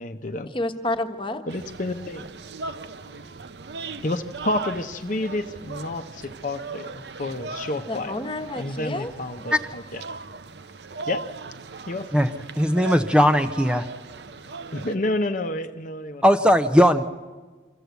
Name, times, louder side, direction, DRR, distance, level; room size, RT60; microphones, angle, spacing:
voice 1, 0.0-0.5 1.5-2.3 4.0-8.2 8.6-10.0 11.1-11.2 11.9-12.1 14.7-16.2, left 2 dB, 45° left, 8 dB, 0.8 m, -29 dB
voice 2, 0.5-1.4 7.9-9.1, left 1 dB, 30° left, 7 dB, 1.2 m, -29 dB
sound 1, 1.5-15.0, right 4 dB, 75° right, 0.7 m, -38 dB
voice 3, 12.6-13.9 16.2-17.0, equal, 5° right, 7 dB, 0.6 m, -18 dB
25.0 x 14.0 x 8.1 m, 1.4 s
head